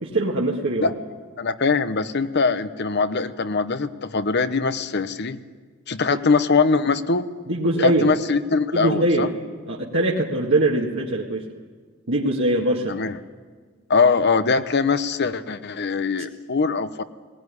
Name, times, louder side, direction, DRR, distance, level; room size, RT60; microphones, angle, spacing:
voice 1, 0.0-0.9 6.1-6.2 7.5-8.1 8.7-9.3 9.7-11.5 12.1-12.9, right 1 dB, 65° right, -4 dB, 1.9 m, -22 dB
voice 2, 1.4-5.4 5.9-7.3 7.8-9.3 12.9-13.2 13.9-17.0, left 4 dB, 55° left, 12 dB, 0.9 m, -22 dB
19.5 x 19.0 x 9.8 m, 1.5 s
head